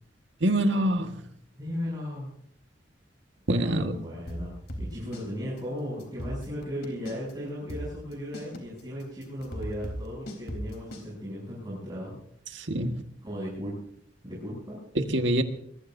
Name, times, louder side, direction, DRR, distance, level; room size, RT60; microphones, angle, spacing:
voice 1, 0.4-1.2 3.5-4.0 12.5-13.0 15.0-15.4, right 1 dB, 75° right, 1.7 m, -25 dB
voice 2, 1.6-2.3 3.5-4.5 4.8-12.2 13.2-13.7 14.2-14.8, equal, 20° right, 7.8 m, -36 dB
sound 1, 4.3-5.3 5.6-5.7 6.0-7.3 7.7-11.1, equal, 55° left, 3.8 m, -36 dB
24.0 x 21.5 x 2.7 m
head